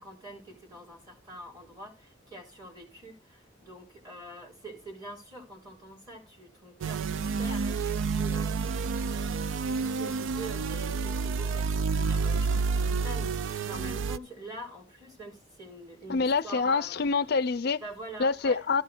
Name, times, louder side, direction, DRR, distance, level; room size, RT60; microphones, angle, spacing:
voice 1, 0.0-8.5 9.1-9.4 9.7-17.0 17.8-18.7, right 1 dB, 20° right, 4.1 m, -45 dB
sound 1, 6.8-14.2, right 5 dB, 85° right, 0.4 m, -29 dB
voice 2, 16.1-17.8 18.2-18.8, left 4 dB, 55° left, 0.5 m, -26 dB
13.0 x 5.5 x 4.3 m
head